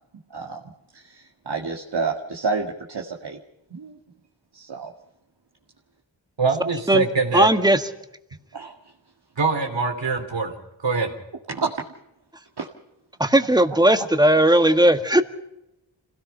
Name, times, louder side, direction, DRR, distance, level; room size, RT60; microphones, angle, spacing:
voice 1, 0.9-3.4 3.7-4.0 4.5-4.9 8.5-8.7 11.5-11.7 12.6-12.7, right 4 dB, 65° right, 0 dB, 2.1 m, -29 dB
voice 2, 6.4-7.5 9.4-10.5 10.8-11.1, right 4 dB, 80° right, 4 dB, 3.5 m, -23 dB
voice 3, 7.3-7.8 13.2-15.2, right 1 dB, 10° right, 8 dB, 1.6 m, -17 dB
27.0 x 17.5 x 5.7 m, 0.86 s
cardioid pair, 45°, 44 cm